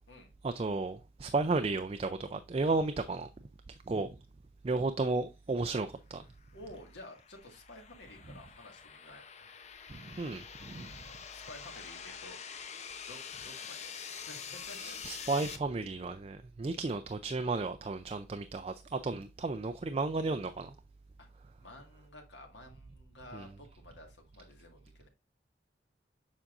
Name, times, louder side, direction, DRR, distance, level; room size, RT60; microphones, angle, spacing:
voice 1, 0.4-3.3 3.7-4.2 4.6-6.2 9.9-11.0 14.8-20.7 23.3-23.5, right 3 dB, 35° right, 0.4 m, -33 dB
voice 2, 6.5-9.3 11.3-12.4 13.1-15.3 21.2-21.3 21.6-25.1, left 1 dB, 85° left, 1.8 m, -52 dB
sound 1, 6.6-15.6, left 7 dB, 40° left, 0.6 m, -46 dB
7.2 x 5.3 x 2.5 m
head